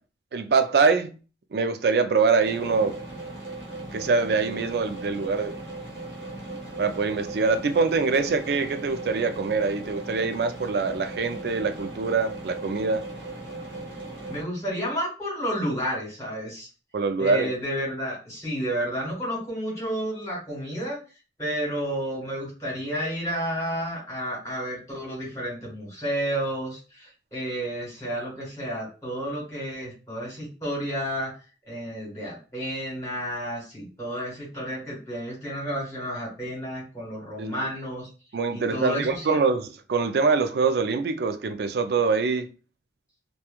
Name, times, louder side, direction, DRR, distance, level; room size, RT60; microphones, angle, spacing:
voice 1, 0.3-1.1 1.5-3.0 3.9-5.5 6.8-13.0 16.9-17.5 37.4-37.5 38.3-42.4, right 4 dB, 60° right, 0.4 m, -24 dB
sound 1, 2.4-14.4, right 2 dB, 90° right, 0.9 m, -38 dB
voice 2, 14.3-16.7 17.2-21.0 21.4-31.3 31.7-38.1 38.5-39.4, equal, 15° left, 1.4 m, -31 dB
2.9 x 2.2 x 2.3 m
head